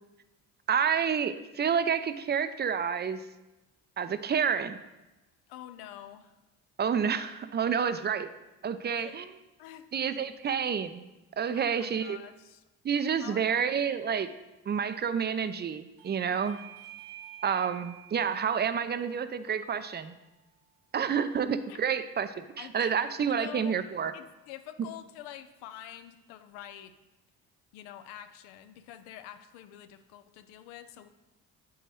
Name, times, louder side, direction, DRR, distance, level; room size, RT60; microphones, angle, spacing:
voice 1, 0.7-3.2 4.0-4.8 6.8-8.3 8.6-9.2 9.9-11.0 11.4-12.2 12.8-14.3 14.7-16.6 17.4-20.1 20.9-24.1, right 7 dB, 30° right, 12 dB, 0.4 m, -29 dB
voice 2, 5.5-6.3 8.0-8.1 8.9-9.2 9.6-9.9 11.5-12.6 13.2-13.7 16.3-16.4 21.7-21.8 22.6-23.0 23.4-23.8 24.1-26.9 27.7-31.1, left 11 dB, 90° left, 10 dB, 0.5 m, -46 dB
Bell / Doorbell, 16.0-21.2, right 13 dB, 70° right, 0.7 m, -51 dB
7.8 x 4.6 x 3.0 m, 1.0 s
supercardioid pair, 65°, 36 cm